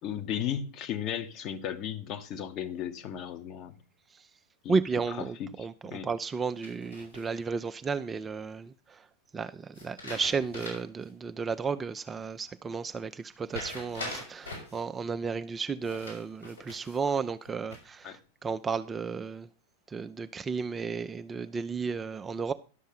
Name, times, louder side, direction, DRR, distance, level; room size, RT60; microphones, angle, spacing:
voice 1, 0.0-3.8 4.6-4.8 5.6-6.1 18.0-18.2, left 9 dB, 35° left, 1.1 m, -35 dB
voice 2, 4.7-9.1 9.3-19.5 19.9-22.5, right 5 dB, 15° right, 0.4 m, -33 dB
sound 1, 6.6-7.5 9.7-11.0 11.4-11.5 13.5-14.8 15.8-17.0 17.4-18.0, left 2 dB, 80° left, 5.2 m, -42 dB
11.5 x 6.4 x 5.6 m
figure-of-eight pair, 90°, 0 cm